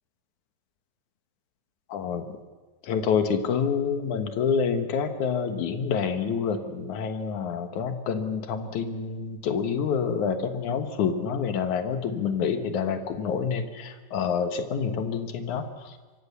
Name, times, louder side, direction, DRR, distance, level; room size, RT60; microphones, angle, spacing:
voice 1, 1.9-2.3 2.8-15.7, left 6 dB, 60° left, 8 dB, 2.7 m, -27 dB
25.5 x 23.0 x 7.0 m, 1.3 s
omnidirectional pair, 4.1 m